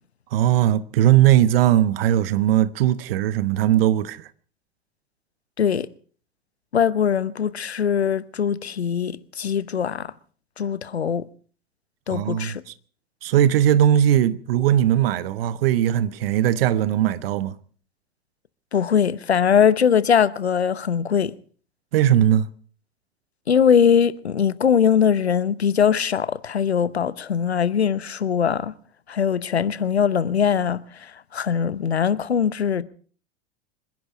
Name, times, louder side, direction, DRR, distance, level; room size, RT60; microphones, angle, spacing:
voice 1, 0.3-4.3 12.1-12.5 13.2-17.6 21.9-22.5, right 11 dB, 65° right, 1.0 m, -19 dB
voice 2, 5.6-5.9 6.7-10.1 10.6-11.3 12.1-12.6 18.7-21.3 23.5-28.7 29.1-32.8, left 7 dB, 90° left, 0.9 m, -21 dB
26.5 x 11.0 x 5.0 m
hypercardioid pair, 85°, 31 cm